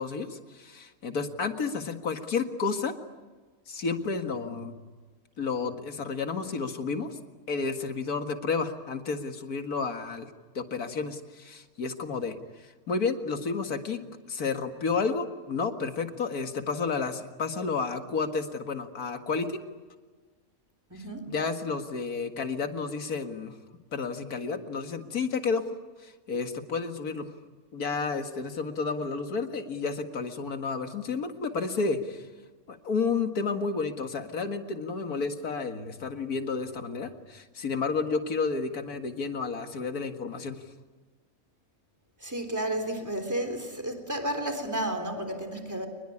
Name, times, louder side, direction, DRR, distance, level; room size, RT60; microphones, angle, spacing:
voice 1, 0.0-2.9 3.7-4.8 5.4-7.2 7.5-10.3 10.5-12.3 12.9-14.0 14.3-19.6 21.3-23.5 23.9-25.7 26.0-27.3 27.7-32.2 32.7-40.6, left 4 dB, 90° left, 6 dB, 2.3 m, -31 dB
voice 2, 20.9-21.3 42.2-45.9, right 1 dB, 10° right, 5 dB, 3.6 m, -32 dB
27.5 x 21.0 x 9.9 m, 1.3 s
omnidirectional pair, 1.5 m